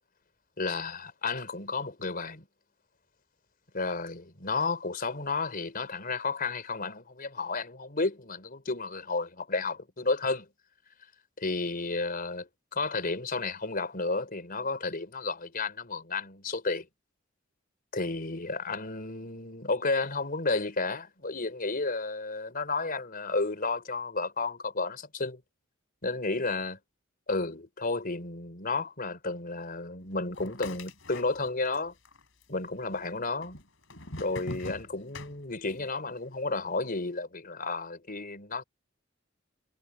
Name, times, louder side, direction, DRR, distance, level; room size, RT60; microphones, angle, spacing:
voice 1, 0.6-2.5 3.7-10.5 11.4-16.9 17.9-25.4 26.0-26.8 27.3-31.9 32.5-33.6 34.2-38.6, left 3 dB, 45° left, 4.2 m, -32 dB
sound 1, 30.3-31.8 32.0-32.8 33.4-35.9, left 2 dB, 65° left, 5.2 m, -42 dB
head